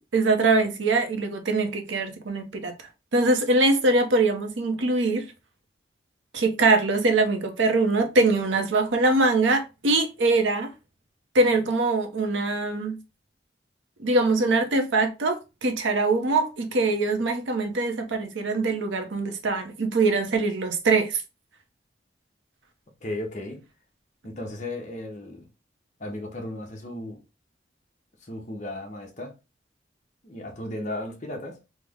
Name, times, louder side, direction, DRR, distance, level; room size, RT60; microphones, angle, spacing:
voice 1, 0.1-2.7 3.1-5.3 6.3-10.7 11.3-12.9 14.0-21.2, right 2 dB, 85° right, 0.7 m, -23 dB
voice 2, 23.0-23.6 24.2-25.5 26.0-27.2 28.2-29.3 30.2-31.6, left 1 dB, 40° left, 0.8 m, -35 dB
3.2 x 2.1 x 3.5 m
head